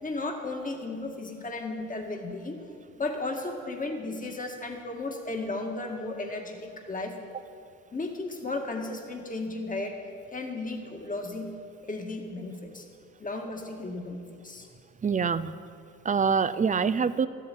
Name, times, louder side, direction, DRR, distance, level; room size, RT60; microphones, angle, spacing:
voice 1, 0.0-2.6 3.0-7.1 7.9-9.9 10.3-11.5 11.8-12.8 13.2-14.7, left 2 dB, 25° left, 2 dB, 2.0 m, -34 dB
voice 2, 15.0-15.5 16.1-17.3, right 6 dB, 25° right, 15 dB, 0.5 m, -25 dB
13.0 x 8.2 x 8.6 m, 2.4 s
cardioid pair, 90°, 30 cm